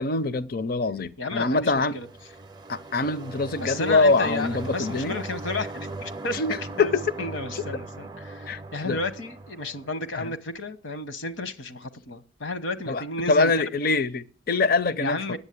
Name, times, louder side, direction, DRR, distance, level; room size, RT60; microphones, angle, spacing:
voice 1, 0.0-2.0 2.7-5.1 6.3-7.0 7.5-7.6 8.5-8.6 8.8-9.0 10.1-10.2 12.9-13.0 13.3-15.2, left 3 dB, 50° left, 0.5 m, -24 dB
voice 2, 1.2-2.1 3.5-6.4 6.8-13.6 15.0-15.4, left 3 dB, 70° left, 1.0 m, -32 dB
sound 1, 1.7-10.4, right 2 dB, 20° right, 0.5 m, -39 dB
9.9 x 8.1 x 8.3 m
head